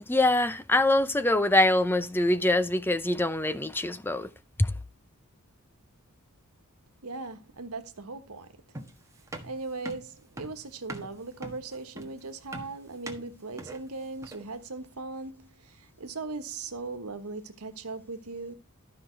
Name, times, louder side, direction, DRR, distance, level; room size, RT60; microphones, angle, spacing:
voice 1, 0.1-4.3 4.6-4.7, left 1 dB, 10° left, 0.6 m, -24 dB
voice 2, 7.0-8.5 9.4-18.5, right 3 dB, 85° right, 1.3 m, -39 dB
sound 1, 8.7-14.6, right 1 dB, 15° right, 1.4 m, -42 dB
12.5 x 5.8 x 4.5 m
head